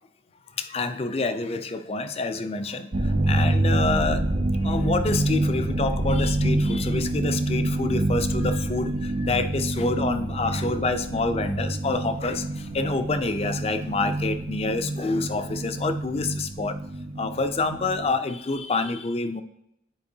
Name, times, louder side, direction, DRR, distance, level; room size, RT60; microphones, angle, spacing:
voice 1, 0.6-4.3 4.6-16.8 17.2-19.4, left 3 dB, 30° left, 10 dB, 0.4 m, -27 dB
sound 1, 2.9-18.1, right 1 dB, 40° right, 0.6 m, -27 dB
9.5 x 4.4 x 2.7 m, 0.83 s
head